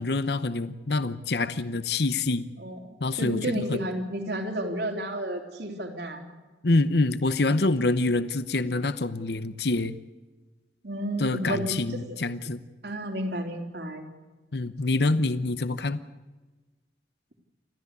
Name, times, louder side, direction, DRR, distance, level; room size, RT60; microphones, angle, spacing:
voice 1, 0.0-2.5 3.0-3.8 6.6-10.0 11.2-12.6 14.5-16.0, left 2 dB, 65° left, 13 dB, 0.9 m, -26 dB
voice 2, 2.6-6.3 10.8-12.2 12.8-14.1, right 1 dB, 65° right, 4 dB, 3.5 m, -32 dB
29.0 x 13.5 x 8.3 m, 1.2 s
head